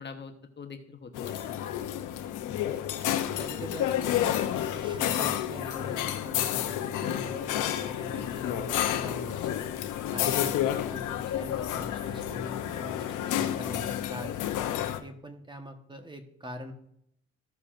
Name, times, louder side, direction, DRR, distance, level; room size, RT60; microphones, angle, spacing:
voice 1, 0.0-1.7 7.1-7.3 10.0-10.2, left 5 dB, 35° left, 5 dB, 1.1 m, -44 dB
sound 1, 1.1-15.0, left 11 dB, 85° left, 0.7 m, -30 dB
voice 2, 3.4-9.7 10.1-16.7, equal, 15° right, 5 dB, 1.2 m, -43 dB
14.5 x 6.8 x 2.6 m, 0.70 s
cardioid pair, 90°, 30 cm